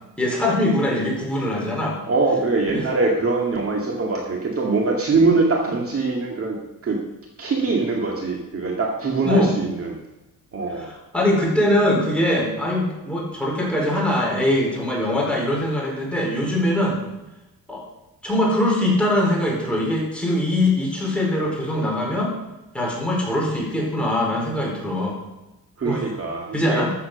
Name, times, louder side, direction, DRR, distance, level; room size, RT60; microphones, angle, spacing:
voice 1, 0.2-2.0 2.7-2.9 9.2-9.6 10.7-17.0 17.7-17.8 18.2-22.3 22.7-25.2 25.8-26.1 26.5-26.9, left 1 dB, 5° left, -3 dB, 4.4 m, -22 dB
voice 2, 2.1-6.6 6.8-7.0 7.4-10.0 10.5-10.9 25.8-26.8, right 3 dB, 40° right, 0 dB, 2.1 m, -22 dB
13.5 x 7.8 x 6.8 m, 0.98 s
cardioid pair, 135°, 35 cm